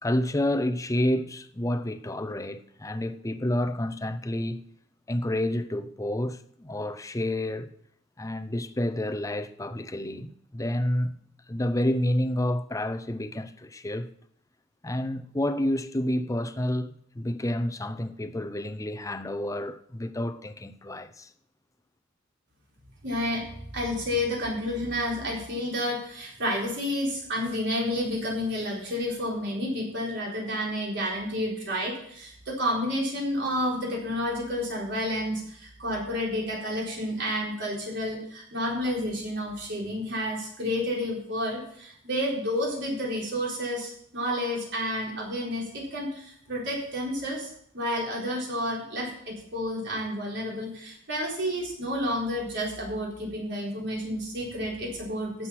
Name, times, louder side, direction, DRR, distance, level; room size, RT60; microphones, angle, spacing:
voice 1, 0.0-4.6 5.1-7.7 8.2-11.1 11.5-14.1 14.8-21.3, left 1 dB, 15° left, 0.6 m, -29 dB
voice 2, 23.0-55.5, equal, 60° right, 4.2 m, -30 dB
12.0 x 7.8 x 5.8 m
head